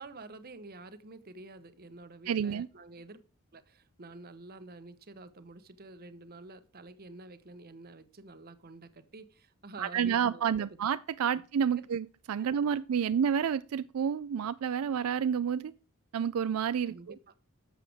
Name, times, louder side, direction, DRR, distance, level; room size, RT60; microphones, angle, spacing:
voice 1, 0.0-3.2 3.5-10.8 11.3-11.4 11.7-11.8 12.4-12.5 13.0-13.1 16.9-17.3, right 2 dB, 45° right, 0.9 m, -49 dB
voice 2, 2.3-2.7 9.8-15.7 16.1-16.9, right 7 dB, 75° right, 0.4 m, -29 dB
11.5 x 7.4 x 3.5 m
head